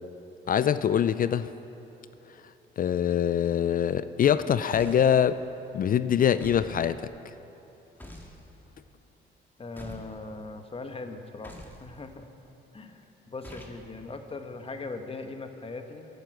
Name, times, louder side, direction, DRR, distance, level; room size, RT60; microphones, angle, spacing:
voice 1, 0.5-1.5 2.8-5.4 5.7-7.1, left 9 dB, 45° left, 14 dB, 0.4 m, -24 dB
sound 1, 4.7-5.2 6.4-6.7 8.0-8.4 9.8-10.1 11.4-11.8 13.4-13.8, left 1 dB, 10° left, 1.8 m, -44 dB
voice 2, 9.6-12.2 12.7-16.1, left 3 dB, 30° left, 6 dB, 1.1 m, -40 dB
10.5 x 10.5 x 7.8 m, 3.0 s
cardioid pair, 90°, 20 cm